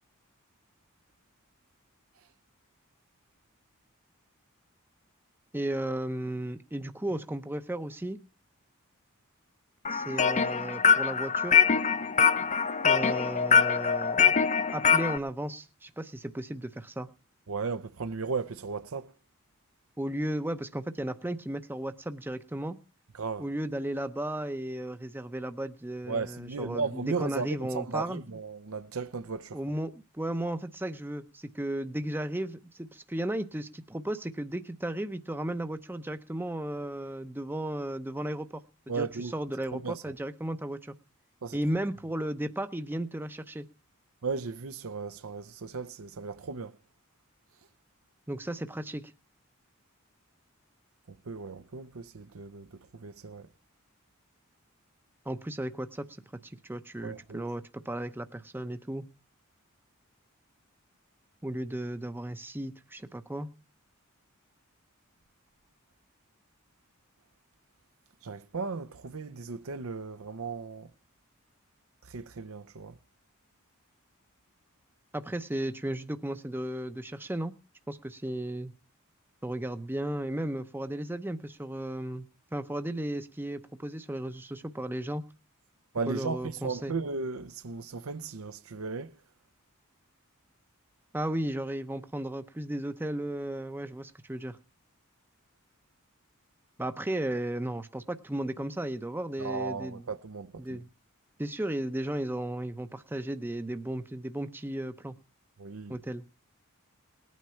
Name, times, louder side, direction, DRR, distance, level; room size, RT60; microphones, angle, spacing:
voice 1, 5.5-8.2 9.9-11.6 12.8-14.4 14.7-17.1 20.0-22.8 23.4-28.2 29.5-40.9 41.5-43.7 48.3-49.1 55.3-56.1 56.4-59.0 61.4-63.5 75.1-77.5 77.9-78.7 79.4-85.2 86.1-87.0 91.1-94.6 96.8-100.0 100.6-100.9 101.4-105.2 105.9-106.3, right 1 dB, 10° right, 0.7 m, -35 dB
sound 1, 9.8-15.2, left 6 dB, 35° left, 0.7 m, -24 dB
voice 2, 17.5-19.1 23.2-23.5 26.1-29.6 38.9-39.3 39.7-40.1 41.4-41.6 44.2-46.8 51.1-53.5 57.0-57.4 68.2-70.9 72.0-73.0 85.9-89.1 99.4-100.8 105.6-106.0, right 4 dB, 70° right, 0.7 m, -36 dB
19.5 x 9.4 x 5.6 m
head